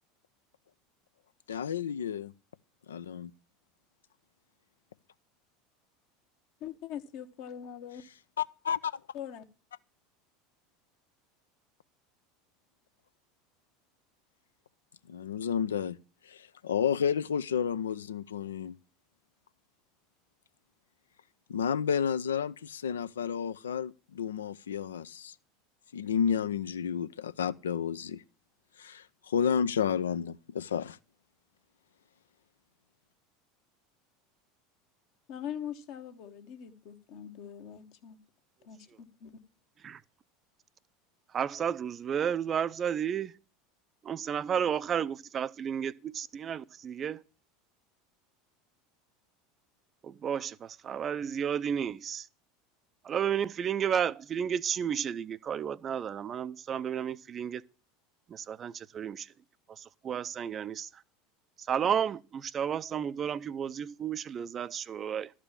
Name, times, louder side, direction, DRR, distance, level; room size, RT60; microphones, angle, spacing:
voice 1, 1.5-2.3 2.9-3.3 8.4-8.9 15.1-16.0 16.3-18.8 21.5-25.3 25.9-28.2 28.8-31.0, left 7 dB, 70° left, 0.4 m, -31 dB
voice 2, 6.6-8.0 9.1-9.4 35.3-38.2 38.6-39.3, left 9 dB, 50° left, 1.1 m, -42 dB
voice 3, 41.3-43.3 44.0-47.2 50.0-52.3 53.0-57.6 58.3-59.3 59.8-60.9 61.7-65.3, right 8 dB, 30° right, 0.4 m, -32 dB
12.5 x 5.0 x 7.2 m
figure-of-eight pair, 75°, 0 cm